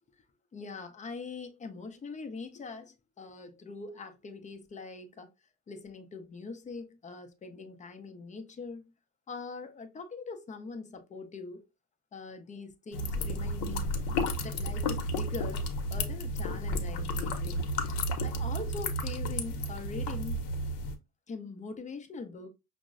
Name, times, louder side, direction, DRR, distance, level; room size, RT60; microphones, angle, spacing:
voice 1, 0.5-5.3 5.7-8.9 9.3-11.7 12.1-13.9 14.4-17.7 18.2-20.4 21.3-22.5, left 4 dB, 15° left, 0.4 m, -42 dB
sound 1, 12.9-21.0, left 1 dB, 55° left, 0.8 m, -32 dB
5.0 x 2.0 x 2.4 m
supercardioid pair, 85°, 50 cm